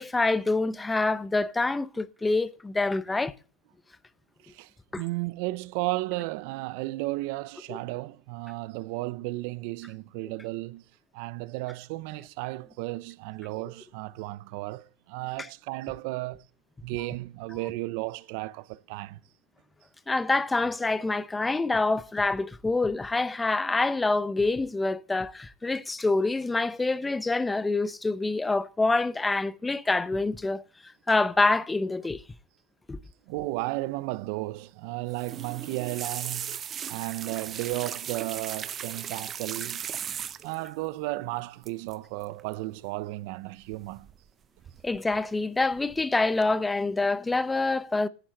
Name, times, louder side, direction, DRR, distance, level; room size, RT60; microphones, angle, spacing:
voice 1, 0.0-3.3 4.9-5.0 7.7-7.8 20.1-30.6 31.1-32.2 32.9-33.0 44.8-48.1, left 3 dB, 10° left, 0.8 m, -26 dB
voice 2, 4.4-10.8 11.1-16.4 16.8-19.2 33.3-36.6 36.9-39.8 40.4-44.1, right 20 dB, 65° right, 0.7 m, -34 dB
sound 1, 35.1-40.7 41.6-41.9 42.2-42.5 43.7-44.3 44.6-45.2 45.6-46.0 46.4-46.5, right 9 dB, 30° right, 0.6 m, -37 dB
10.5 x 10.5 x 6.6 m
supercardioid pair, 125°, 0 cm